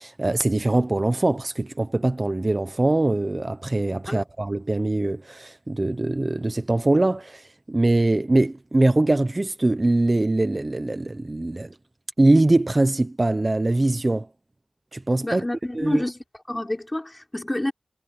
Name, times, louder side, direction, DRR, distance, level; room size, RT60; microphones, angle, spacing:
voice 1, 0.0-11.7 12.2-14.3 14.9-15.4 15.7-16.0, right 2 dB, 30° right, 0.8 m, -22 dB
voice 2, 15.2-16.2 16.5-17.7, left 1 dB, 20° left, 4.0 m, -28 dB
wide cardioid pair, 90°, 0 cm